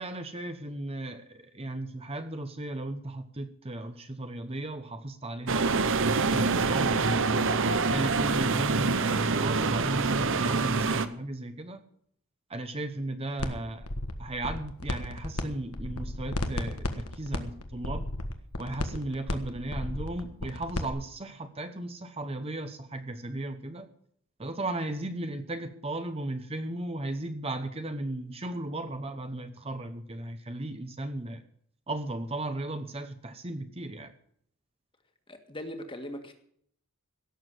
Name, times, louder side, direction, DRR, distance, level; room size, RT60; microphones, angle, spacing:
voice 1, 0.0-5.7 6.3-7.3 7.8-11.8 12.5-13.9 14.2-18.1 18.6-23.9 24.4-31.4 31.9-34.1, right 2 dB, 25° right, 8 dB, 0.9 m, -35 dB
sound 1, 5.5-11.1, right 4 dB, 60° right, 0.9 m, -26 dB
sound 2, 13.4-13.5 13.8-15.4 15.7-20.9, left 1 dB, 80° left, 1.6 m, -33 dB
voice 2, 35.3-36.3, equal, 25° left, 6 dB, 1.8 m, -39 dB
17.0 x 7.2 x 7.8 m, 0.64 s
head